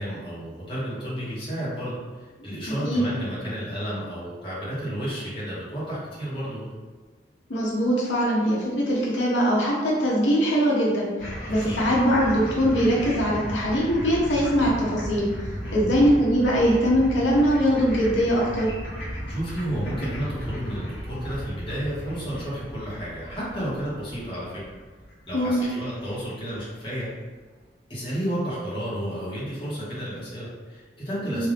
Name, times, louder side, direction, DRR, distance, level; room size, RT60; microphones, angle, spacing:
voice 1, 0.0-6.7 11.6-11.8 15.6-16.0 19.3-24.6 25.3-27.1 27.9-31.5, equal, 25° left, -8 dB, 1.1 m, -32 dB
voice 2, 7.5-11.1 11.5-15.3 15.7-18.7 25.3-25.6 31.2-31.5, equal, 80° left, -5 dB, 0.8 m, -22 dB
sound 1, 11.2-26.6, equal, 50° left, 1.1 m, -35 dB
3.7 x 2.5 x 3.3 m, 1.4 s
head